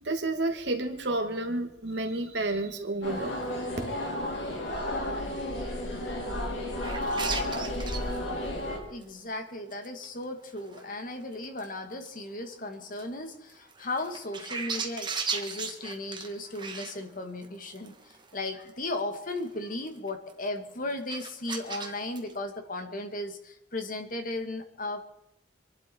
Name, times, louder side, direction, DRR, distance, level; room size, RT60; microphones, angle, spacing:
voice 1, 0.0-3.4 3.8-3.9, right 2 dB, 70° right, 5 dB, 2.3 m, -30 dB
chinese citytemple singing mantra, 3.0-8.8, left 1 dB, 80° left, 4.7 m, -32 dB
sound 1, 6.8-8.2 8.5-8.6 9.0-9.1 9.7-10.2 10.6-11.7 12.0-12.1 12.9-13.0 13.5-17.5 17.7-18.3 18.7-19.0 19.3-19.5 19.9-20.3 20.7-20.8 21.1-22.4, right 5 dB, 25° right, 1.7 m, -37 dB
voice 2, 8.9-25.0, left 2 dB, 45° left, 6 dB, 2.1 m, -36 dB
26.5 x 11.5 x 4.6 m, 0.81 s
head